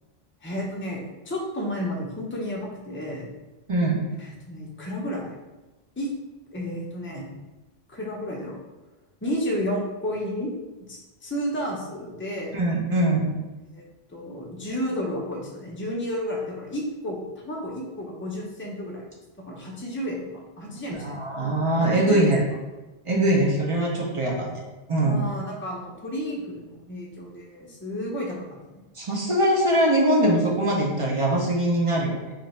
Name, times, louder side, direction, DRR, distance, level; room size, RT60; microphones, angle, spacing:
voice 1, 0.4-3.3 4.2-5.4 6.0-6.1 6.5-7.3 7.9-8.6 9.2-10.5 10.9-12.6 13.7-13.8 14.1-17.2 17.4-19.0 19.5-21.2 21.8-22.3 25.0-28.8, equal, 15° left, -3 dB, 0.5 m, -32 dB
voice 2, 3.7-4.0 12.5-13.3 20.9-22.4 23.1-24.6 24.9-25.3 29.0-32.3, right 1 dB, 40° right, -2 dB, 0.5 m, -22 dB
2.9 x 2.5 x 4.2 m, 1.1 s
omnidirectional pair, 1.1 m